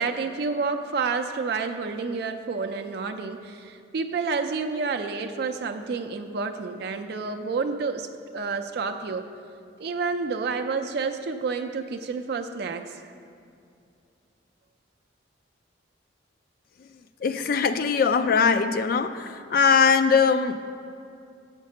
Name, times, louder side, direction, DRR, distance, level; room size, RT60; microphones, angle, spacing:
voice 1, 0.0-8.1 8.3-9.2 9.8-12.9, right 4 dB, 55° right, 5 dB, 0.4 m, -29 dB
voice 2, 17.2-20.5, left 5 dB, 50° left, 10 dB, 0.3 m, -21 dB
6.5 x 5.2 x 6.5 m, 2.4 s
head